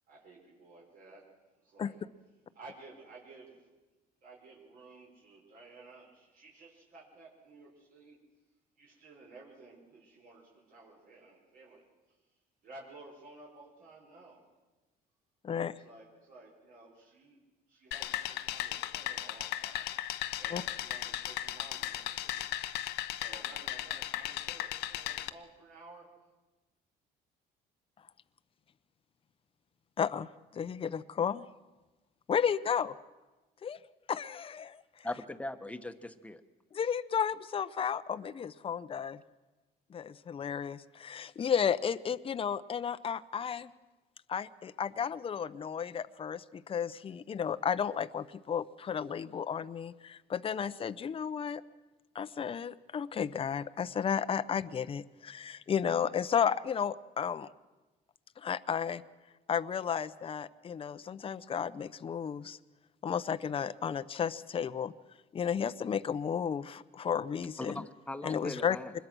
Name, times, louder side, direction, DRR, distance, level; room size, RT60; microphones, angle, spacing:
voice 1, 0.1-2.0 2.5-3.7 4.2-8.2 8.8-12.2 12.6-14.5 15.7-17.4 17.7-22.8 23.1-26.1, right 3 dB, 60° right, -3 dB, 5.4 m, -54 dB
voice 2, 15.4-15.7 20.5-20.6 30.0-31.4 32.3-32.9 33.6-33.8 34.1-34.8 36.7-39.2 39.9-43.7 44.3-51.6 52.1-57.5 58.4-59.0 59.5-62.6 63.0-64.9 65.3-67.8 68.2-68.8, left 7 dB, 35° left, 13 dB, 0.8 m, -33 dB
sound 1, 17.9-25.3, left 14 dB, 85° left, 0.9 m, -36 dB
voice 3, 35.0-36.4 67.6-68.9, left 2 dB, 10° left, 9 dB, 1.3 m, -40 dB
25.5 x 21.5 x 6.2 m, 1.2 s
cardioid pair, 110°, 17 cm